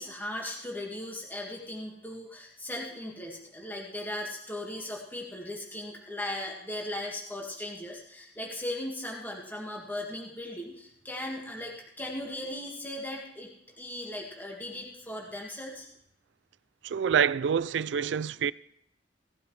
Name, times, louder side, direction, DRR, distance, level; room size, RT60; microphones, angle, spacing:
voice 1, 0.0-13.5 13.8-15.9, left 1 dB, 10° left, 1.9 m, -38 dB
voice 2, 16.8-18.5, right 7 dB, 80° right, 0.4 m, -26 dB
17.5 x 12.0 x 3.3 m
head